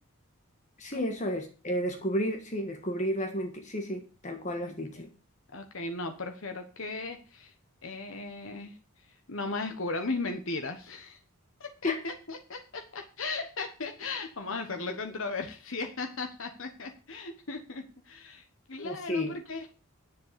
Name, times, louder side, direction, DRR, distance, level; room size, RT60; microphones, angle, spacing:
voice 1, 0.8-5.1 11.8-12.0 18.8-19.4, equal, 35° left, 4 dB, 1.6 m, -32 dB
voice 2, 4.6-5.0 5.5-7.5 7.8-8.8 9.3-11.2 11.6-19.7, left 3 dB, 60° left, 5 dB, 1.2 m, -37 dB
10.5 x 7.4 x 6.8 m, 0.35 s
head